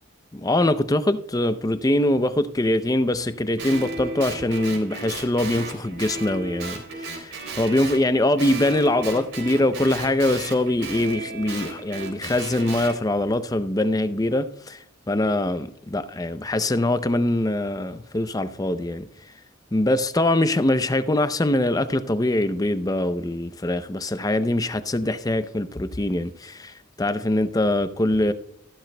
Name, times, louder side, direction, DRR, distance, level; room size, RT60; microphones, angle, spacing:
voice 1, 0.3-19.1 19.7-28.3, left 1 dB, 20° left, 0.5 m, -23 dB
Guitar, 3.6-8.0 8.4-13.0, right 3 dB, 75° right, 3.5 m, -34 dB
14.5 x 12.0 x 2.2 m
head